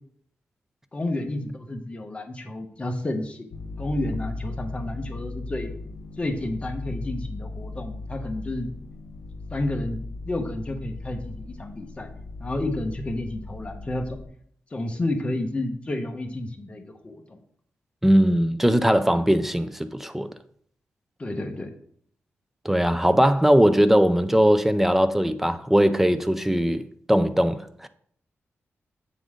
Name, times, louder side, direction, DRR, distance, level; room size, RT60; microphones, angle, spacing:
voice 1, 0.9-3.5 3.8-5.7 6.2-8.7 9.5-12.1 12.4-14.2 14.7-17.4 21.2-21.7, left 1 dB, 25° left, 0.9 m, -31 dB
sound 1, 3.5-14.3, left 2 dB, 90° left, 0.9 m, -37 dB
voice 2, 18.0-20.3 22.6-27.9, equal, 5° right, 0.4 m, -20 dB
7.4 x 3.9 x 4.9 m
wide cardioid pair, 125°, 5 cm